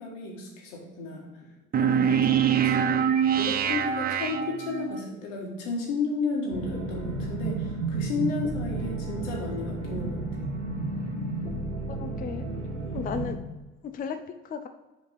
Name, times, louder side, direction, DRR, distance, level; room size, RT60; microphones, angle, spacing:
voice 1, 0.0-1.3 1.8-2.7 3.3-10.2, left 3 dB, 75° left, -1 dB, 1.7 m, -33 dB
sound 1, 1.7-5.0, right 8 dB, 25° right, 0.5 m, -24 dB
sound 2, 6.5-13.3, right 3 dB, 85° right, 1.1 m, -32 dB
voice 2, 11.9-12.4 12.9-13.4 13.8-14.7, left 6 dB, 25° left, 8 dB, 0.5 m, -35 dB
5.2 x 5.2 x 4.2 m, 1.1 s
hypercardioid pair, 60°, 37 cm